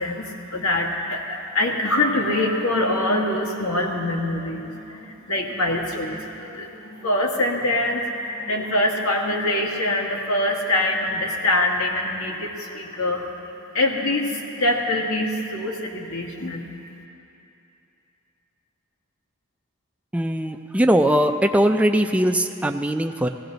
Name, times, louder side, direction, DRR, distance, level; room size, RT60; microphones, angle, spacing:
voice 1, 0.0-13.4 13.7-16.7, left 1 dB, 75° left, 0 dB, 1.7 m, -24 dB
voice 2, 20.1-23.3, right 1 dB, 5° right, 5 dB, 0.4 m, -20 dB
17.5 x 15.5 x 4.0 m, 2.8 s
head